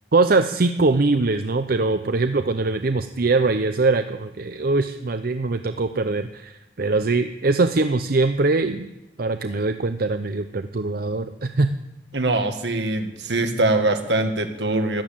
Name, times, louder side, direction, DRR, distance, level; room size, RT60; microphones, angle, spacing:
voice 1, 0.1-8.9 9.2-11.7, right 3 dB, 55° right, 9 dB, 0.7 m, -22 dB
voice 2, 12.1-15.0, right 2 dB, 75° right, 6 dB, 1.9 m, -22 dB
13.5 x 12.0 x 8.7 m, 0.96 s
head